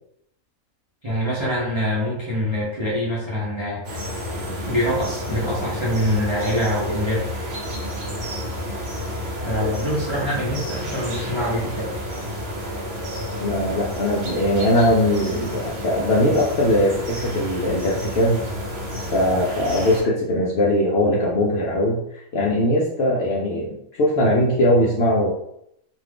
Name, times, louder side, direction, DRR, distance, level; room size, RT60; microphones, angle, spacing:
voice 1, 1.0-4.0 4.6-7.2 9.4-12.0, equal, 30° right, -7 dB, 0.5 m, -24 dB
sound 1, 3.8-20.0, equal, 55° right, 1.0 m, -30 dB
voice 2, 13.4-18.5 19.0-25.3, left 1 dB, 65° left, -3 dB, 0.7 m, -20 dB
2.5 x 2.4 x 3.4 m, 0.75 s
omnidirectional pair, 1.5 m